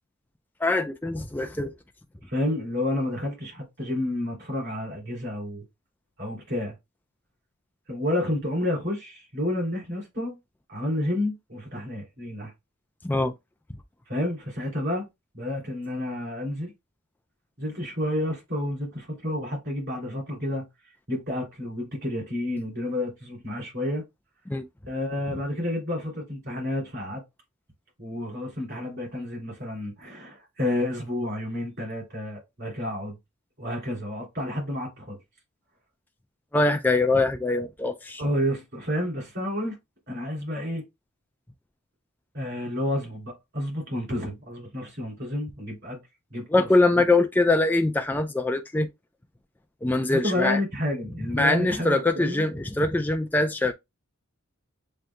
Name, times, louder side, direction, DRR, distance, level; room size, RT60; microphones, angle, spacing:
voice 1, 0.6-1.7 13.0-13.3 24.5-24.7 36.5-38.2 46.5-48.9 49.8-50.6 51.3-53.7, left 2 dB, 10° left, 0.3 m, -23 dB
voice 2, 2.3-5.6 6.2-6.7 7.9-10.4 10.7-12.5 14.1-15.1 15.3-16.7 17.6-20.7 21.1-24.0 24.9-27.2 28.0-33.2 33.6-35.2 38.2-39.8 40.1-40.8 42.3-46.0 46.3-46.7 50.1-52.4, left 1 dB, 50° right, 3.1 m, -30 dB
7.6 x 2.7 x 2.2 m
head